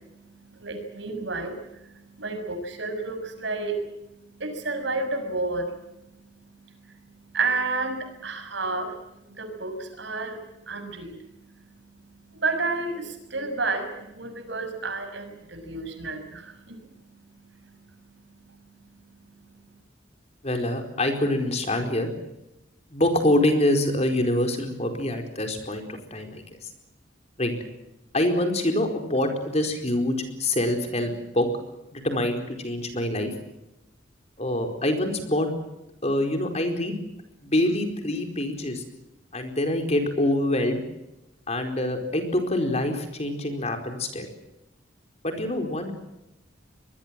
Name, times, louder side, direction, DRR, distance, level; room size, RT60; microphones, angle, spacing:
voice 1, 0.0-5.9 6.7-9.0 9.3-11.3 12.3-16.9 17.5-17.8 19.4-19.6, right 3 dB, 70° right, 7 dB, 6.4 m, -31 dB
voice 2, 20.4-22.1 22.9-26.4 27.4-27.5 28.1-31.5 31.9-33.3 34.4-35.5 36.0-36.9 37.4-38.8 39.3-40.8 41.5-44.3 45.2-45.9, left 1 dB, 35° left, 5 dB, 4.6 m, -25 dB
24.5 x 22.0 x 7.6 m, 0.90 s
head